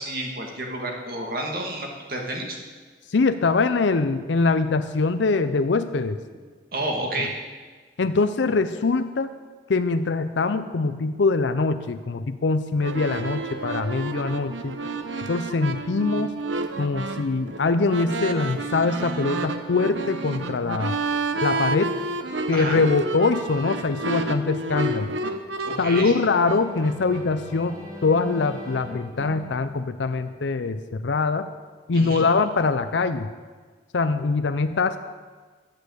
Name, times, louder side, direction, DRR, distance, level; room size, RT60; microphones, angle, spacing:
voice 1, 0.0-2.6 6.7-7.3 22.5-22.8 25.6-26.1 31.9-32.3, right 1 dB, 50° right, 1 dB, 2.2 m, -30 dB
voice 2, 3.1-6.2 7.2-7.3 8.0-9.3 9.7-14.8 15.3-16.3 16.8-21.0 21.4-22.0 22.5-25.1 25.8-31.5 31.9-33.3 33.9-35.0, left 3 dB, 80° left, 10 dB, 0.5 m, -23 dB
sound 1, 12.8-27.3, right 2 dB, 90° right, 0.9 m, -30 dB
sound 2, 26.1-30.9, left 1 dB, 20° right, 2.4 m, -41 dB
12.0 x 8.4 x 8.0 m, 1.5 s
head